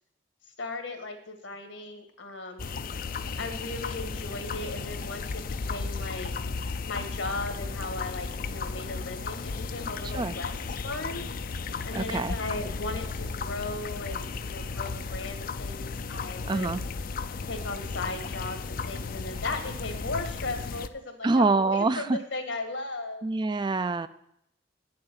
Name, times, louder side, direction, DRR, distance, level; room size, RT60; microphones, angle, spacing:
voice 1, 0.6-2.8 3.3-6.3 6.8-10.5 10.8-11.2 11.8-16.7 17.5-23.2, left 2 dB, 80° left, 5 dB, 1.8 m, -37 dB
sound 1, 2.6-20.9, left 4 dB, 50° left, 0.5 m, -34 dB
voice 2, 10.0-10.3 11.9-12.4 16.5-16.8 21.2-22.2 23.2-24.1, right 3 dB, 25° right, 13 dB, 0.3 m, -25 dB
8.9 x 6.9 x 8.1 m, 0.76 s
head